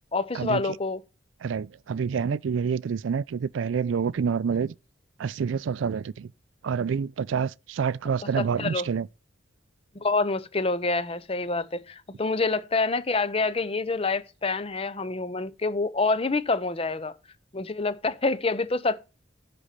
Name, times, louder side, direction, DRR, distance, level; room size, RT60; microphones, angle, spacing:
voice 1, 0.1-1.0 8.4-8.9 9.9-17.1 17.5-19.0, left 3 dB, 30° left, 0.6 m, -27 dB
voice 2, 1.4-4.7 5.2-6.3 6.6-9.1, right 6 dB, 75° right, 0.4 m, -27 dB
10.0 x 4.2 x 6.6 m
head